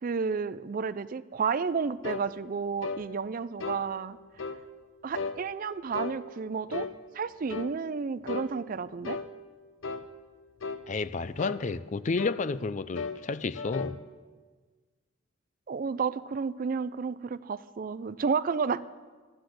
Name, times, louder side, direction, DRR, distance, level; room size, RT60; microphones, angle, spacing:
voice 1, 0.0-4.2 5.0-6.9 7.1-9.2 15.7-18.8, right 5 dB, 45° right, 0.4 m, -31 dB
sound 1, 2.0-2.3 2.8-3.1 3.6-3.8 4.4-4.6 5.1-5.4 5.9-6.2 6.7-7.0 7.5-7.7 8.3-8.5 9.0-9.3 9.8-10.1 10.6-10.9 11.4-11.6 12.2-12.4 13.0-13.2 13.5-14.0, left 5 dB, 80° left, 0.7 m, -35 dB
voice 2, 10.9-14.0, left 4 dB, 40° left, 0.4 m, -31 dB
12.0 x 10.0 x 7.7 m
head